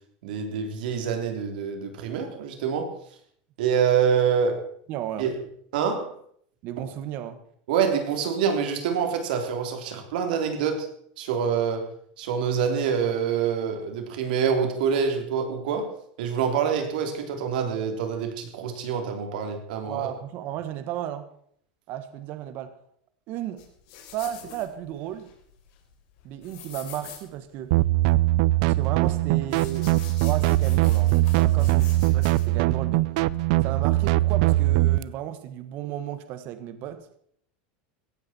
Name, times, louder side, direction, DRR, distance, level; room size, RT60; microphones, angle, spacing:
voice 1, 0.2-2.9 3.6-4.6 5.2-5.3 5.7-6.2 7.7-10.9 11.2-11.9 12.2-15.9 16.2-20.1, right 7 dB, 80° right, 4 dB, 3.4 m, -26 dB
voice 2, 4.9-5.3 6.6-7.4 19.9-21.3 21.9-22.7 23.3-23.6 24.1-25.3 26.2-27.7 28.6-29.9 30.2-33.1 33.6-37.0, right 11 dB, 45° right, 10 dB, 1.5 m, -34 dB
sound 1, 23.6-32.4, left 9 dB, 55° left, 3.9 m, -46 dB
sound 2, 27.7-35.0, right 18 dB, 60° right, 0.5 m, -21 dB
17.0 x 14.5 x 4.5 m, 0.65 s
supercardioid pair, 160°, 5 cm